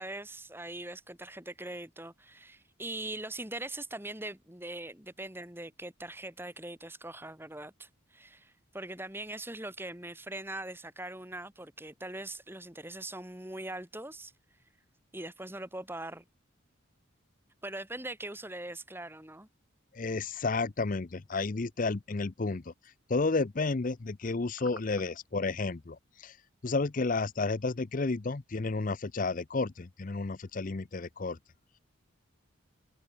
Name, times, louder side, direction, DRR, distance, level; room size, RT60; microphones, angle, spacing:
voice 1, 0.0-14.3 15.1-16.2 17.6-19.5, right 1 dB, 10° right, 2.8 m, -41 dB
voice 2, 19.9-22.7 23.1-26.4 26.6-31.4, left 3 dB, 40° left, 0.6 m, -31 dB
head